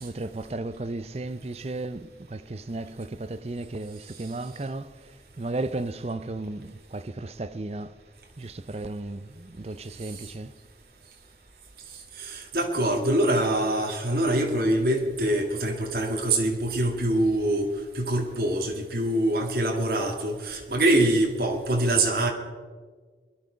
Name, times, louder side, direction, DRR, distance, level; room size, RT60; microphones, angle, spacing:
voice 1, 0.0-5.1 5.4-7.9 8.4-10.5, right 2 dB, 35° right, 0.6 m, -34 dB
voice 2, 12.2-17.7 17.9-22.3, right 1 dB, 60° right, 2.0 m, -24 dB
22.0 x 11.0 x 5.1 m
head